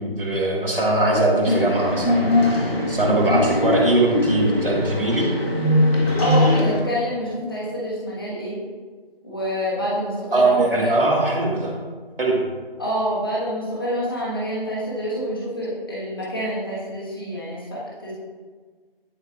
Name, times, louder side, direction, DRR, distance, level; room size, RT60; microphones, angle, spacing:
voice 1, 0.0-5.3 10.3-11.7 12.2-12.4, right 2 dB, 65° right, -3 dB, 1.9 m, -21 dB
sound 1, 1.5-6.8, left 1 dB, 85° left, 1.4 m, -21 dB
voice 2, 6.2-8.6 9.2-10.9 12.8-18.1, equal, 25° left, -7 dB, 1.3 m, -27 dB
11.0 x 4.5 x 2.4 m, 1.5 s
figure-of-eight pair, 165°, 30 cm